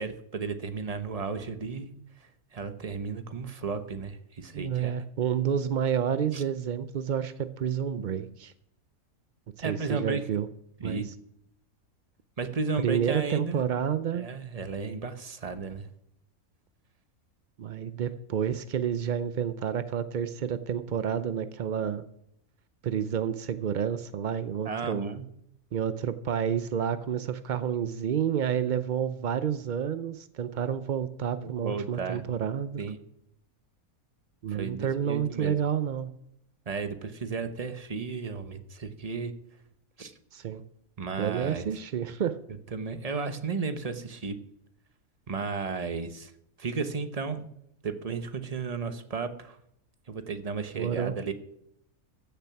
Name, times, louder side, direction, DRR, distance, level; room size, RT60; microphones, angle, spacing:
voice 1, 0.0-1.9 2.2-5.0 6.3-6.4 9.6-10.3 10.8-11.1 12.4-13.6 14.1-15.9 24.6-25.2 31.4-32.2 32.8-33.0 34.5-35.5 36.7-39.3 40.0-40.1 41.0-41.6 42.7-44.4 45.3-46.3 46.6-47.5 47.8-49.6 50.1-51.3, right 4 dB, 30° right, 9 dB, 0.8 m, -34 dB
voice 2, 4.5-8.5 9.6-10.5 10.8-11.0 12.8-14.3 17.6-22.0 22.8-25.1 25.7-32.8 34.4-36.1 40.3-40.6 41.2-42.4 50.7-51.2, right 8 dB, 75° right, 12 dB, 0.4 m, -29 dB
15.0 x 6.9 x 5.8 m, 0.75 s
omnidirectional pair, 1.5 m